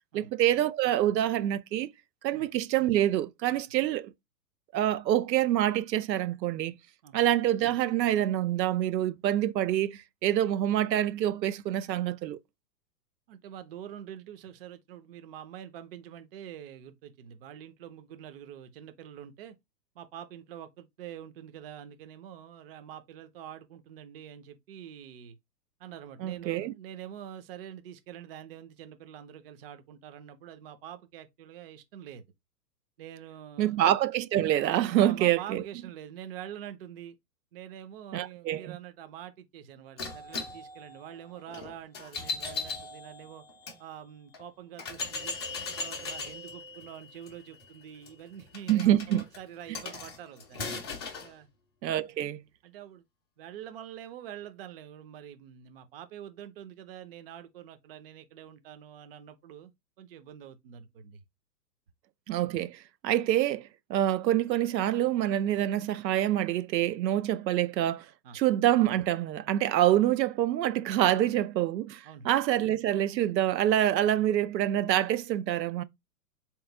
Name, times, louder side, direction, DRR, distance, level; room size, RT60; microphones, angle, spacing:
voice 1, 0.1-1.9 2.2-4.1 4.7-6.8 7.1-12.4 26.2-26.7 33.6-35.6 38.1-38.8 48.7-49.2 51.8-52.4 62.3-68.1 68.3-75.8, right 12 dB, 85° right, 0.6 m, -26 dB
voice 2, 13.3-19.6 20.0-25.4 25.8-32.2 33.0-33.8 34.9-37.2 37.5-43.4 43.8-45.4 45.8-50.7 51.2-51.5 52.0-52.2 52.6-53.0 53.4-61.2 68.2-68.4 72.0-72.3, right 10 dB, 35° right, 0.5 m, -45 dB
sound 1, 40.0-43.8 44.3-44.4 44.8-51.3, left 4 dB, 20° left, 0.4 m, -39 dB
3.5 x 3.0 x 3.3 m
hypercardioid pair, 135°, 49 cm